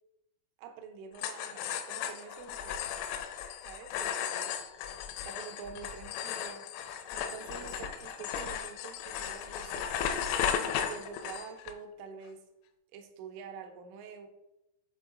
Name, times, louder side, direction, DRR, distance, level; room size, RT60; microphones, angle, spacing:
voice 1, 0.6-3.0 3.6-4.6 5.2-6.7 7.1-12.5 12.9-14.3, right 6 dB, 80° right, 5 dB, 3.0 m, -47 dB
sound 1, 1.2-11.7, left 8 dB, 85° left, 2.9 m, -35 dB
7.8 x 3.6 x 3.6 m, 0.93 s
omnidirectional pair, 5.9 m